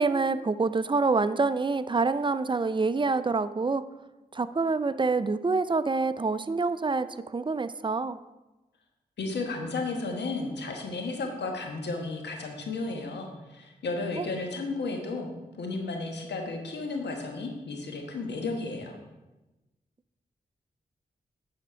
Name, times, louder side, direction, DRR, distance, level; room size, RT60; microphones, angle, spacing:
voice 1, 0.0-3.9 4.3-7.1 7.3-8.2 14.2-14.3, right 4 dB, 30° right, 13 dB, 0.5 m, -26 dB
voice 2, 9.2-15.3 15.6-19.0, left 3 dB, 80° left, 3 dB, 1.4 m, -33 dB
9.8 x 4.3 x 5.7 m, 1.1 s
supercardioid pair, 40°, 17 cm